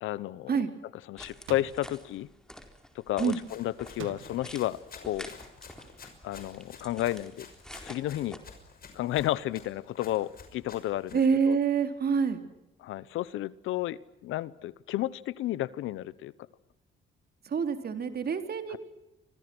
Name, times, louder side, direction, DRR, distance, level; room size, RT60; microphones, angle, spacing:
voice 1, 0.0-0.5 1.1-2.3 2.9-5.3 6.2-7.5 7.8-8.4 8.9-11.2 11.5-11.6 12.8-16.3 18.7-18.8, left 14 dB, 85° left, 19 dB, 1.0 m, -32 dB
sound 1, 1.2-8.4, equal, 5° left, 4.3 m, -48 dB
sound 2, 1.5-2.0 4.0-4.6, right 11 dB, 85° right, 2.1 m, -44 dB
Run, 3.4-11.3, left 5 dB, 50° left, 6.2 m, -51 dB
voice 2, 11.1-12.4 17.4-18.8, right 6 dB, 50° right, 7 dB, 3.8 m, -26 dB
29.5 x 25.5 x 6.3 m, 0.90 s
cardioid pair, 90°, 20 cm